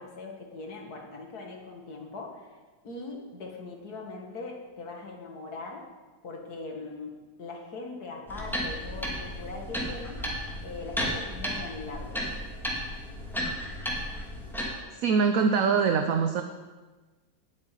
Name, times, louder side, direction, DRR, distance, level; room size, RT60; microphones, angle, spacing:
voice 1, 0.0-2.5 2.8-5.9 6.2-10.2 10.6-12.2, left 3 dB, 60° left, 1 dB, 2.3 m, -41 dB
sound 1, 8.3-14.7, equal, ahead, 2.1 m, -34 dB
voice 2, 14.9-16.4, right 5 dB, 65° right, 6 dB, 1.0 m, -23 dB
8.9 x 7.7 x 9.2 m, 1.3 s
omnidirectional pair, 1.9 m